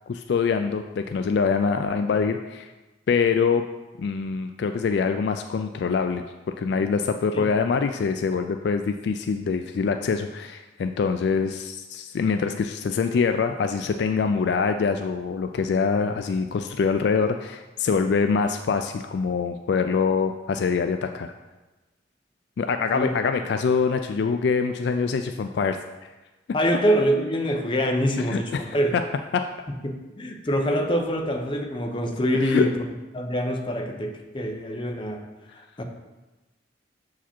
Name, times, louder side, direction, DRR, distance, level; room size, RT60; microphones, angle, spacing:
voice 1, 0.1-2.7 3.1-3.6 4.0-6.3 6.6-21.3 22.6-25.8 28.3-28.6 32.4-32.7, left 5 dB, 65° left, 7 dB, 0.3 m, -24 dB
voice 2, 26.5-28.9 29.8-32.8 33.1-35.2 35.5-35.8, equal, 25° left, 3 dB, 0.7 m, -25 dB
7.0 x 4.8 x 4.4 m, 1.1 s
head